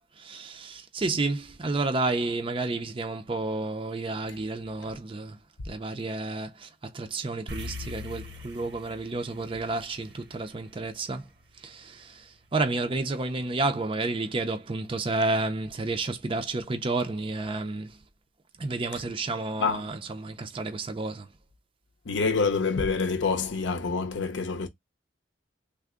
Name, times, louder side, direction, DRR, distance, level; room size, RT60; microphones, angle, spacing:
voice 1, 0.2-5.4 5.6-6.7 6.9-11.2 11.6-17.9 18.6-21.3, right 2 dB, 30° right, 0.4 m, -31 dB
sound 1, 7.5-12.0, left 2 dB, 65° right, 0.7 m, -42 dB
voice 2, 22.1-24.7, left 4 dB, 70° left, 0.6 m, -26 dB
3.4 x 2.0 x 3.5 m
head